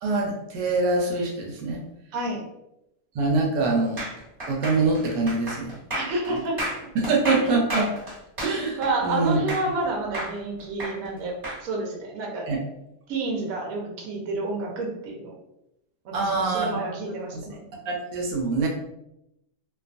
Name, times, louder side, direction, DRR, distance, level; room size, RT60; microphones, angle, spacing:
voice 1, 0.0-1.8 3.1-4.1 4.5-5.7 6.3-6.4 6.9-7.9 8.4-9.4 12.5-12.6 16.1-16.9 17.3-17.6 17.9-18.7, right 3 dB, 80° right, 0 dB, 1.2 m, -24 dB
voice 2, 2.1-2.5 5.9-6.6 8.8-11.3 11.6-12.5 13.1-15.3 16.0-17.6, right 2 dB, 65° right, -1 dB, 1.0 m, -29 dB
sound 1, 4.0-9.8 10.1-11.6, equal, 25° right, 1.0 m, -32 dB
2.7 x 2.3 x 2.4 m, 0.84 s
omnidirectional pair, 1.8 m